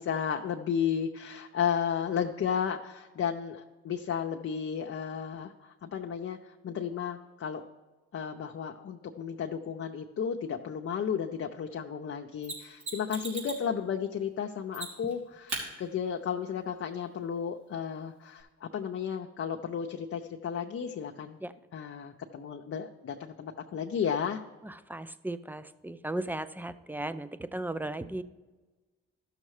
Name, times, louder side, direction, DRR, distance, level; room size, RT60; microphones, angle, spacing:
voice 1, 0.0-7.6 8.1-21.4 21.7-24.4, left 7 dB, 50° left, 3 dB, 0.7 m, -33 dB
Mechanisms, 12.4-13.7 14.7-15.1 15.5-15.6 18.4-18.5, right 3 dB, 70° right, 3.2 m, -37 dB
voice 2, 24.6-28.2, right 1 dB, 5° right, 13 dB, 0.5 m, -36 dB
13.5 x 6.5 x 3.2 m, 1.2 s
supercardioid pair, 45°, 30 cm